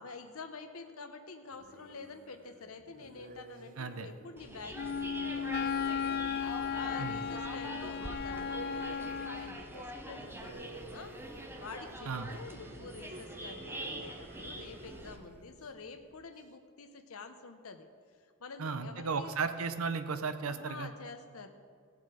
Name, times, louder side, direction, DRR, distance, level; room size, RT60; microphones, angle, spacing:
voice 1, 0.0-17.9 18.2-19.3 20.5-21.5, left 4 dB, 80° left, 7 dB, 0.9 m, -48 dB
Call for Brains, 1.5-16.4, right 3 dB, 40° right, 0.8 m, -51 dB
voice 2, 3.8-4.1 7.0-7.2 12.1-12.3 18.6-20.9, right 5 dB, 80° right, 10 dB, 0.8 m, -35 dB
sound 1, 4.4-15.2, right 1 dB, 10° right, 0.9 m, -45 dB
Wind instrument woodwind instrument, 4.7-9.6, left 7 dB, 50° left, 0.3 m, -35 dB
16.5 x 7.2 x 5.0 m, 2.1 s
head